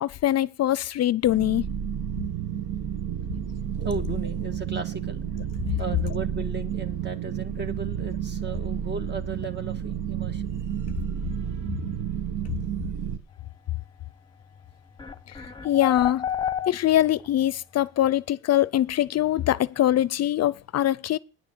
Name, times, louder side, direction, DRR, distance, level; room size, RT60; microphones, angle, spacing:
voice 1, 0.0-1.6 15.6-16.3 16.7-21.2, left 12 dB, 55° left, 0.5 m, -23 dB
sound 1, 1.2-13.2, right 8 dB, 75° right, 1.4 m, -31 dB
voice 2, 3.8-5.2 5.8-10.6 11.1-11.2, right 4 dB, 35° right, 1.7 m, -35 dB
sound 2, 14.4-14.5 15.0-17.3, left 8 dB, 15° left, 0.9 m, -29 dB
10.0 x 6.2 x 8.3 m
cardioid pair, 90°, 30 cm